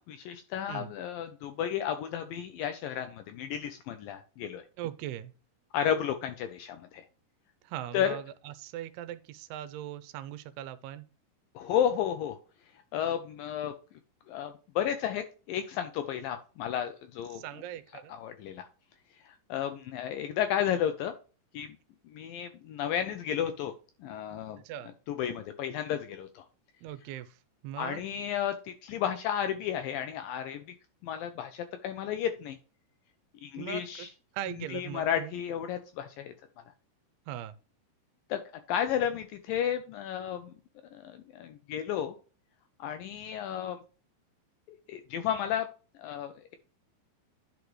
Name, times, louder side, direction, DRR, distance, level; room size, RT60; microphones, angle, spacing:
voice 1, 0.0-4.7 5.7-7.1 7.9-8.2 11.6-12.4 12.9-13.7 14.3-17.4 18.1-18.7 19.3-21.2 21.5-21.8 22.1-23.7 24.0-24.6 25.1-26.5 27.8-30.6 31.0-32.6 33.4-34.1 34.7-36.3 38.3-38.4 38.7-40.5 40.9-42.1 42.8-43.8 44.9-45.7 46.0-46.3, left 9 dB, 80° left, 2.1 m, -32 dB
voice 2, 4.8-5.3 7.6-11.1 17.3-18.1 24.6-24.9 26.8-27.4 27.6-28.0 33.6-34.1 34.3-35.3 37.3-37.5, right 12 dB, 85° right, 2.5 m, -40 dB
10.5 x 5.2 x 3.1 m
omnidirectional pair, 4.7 m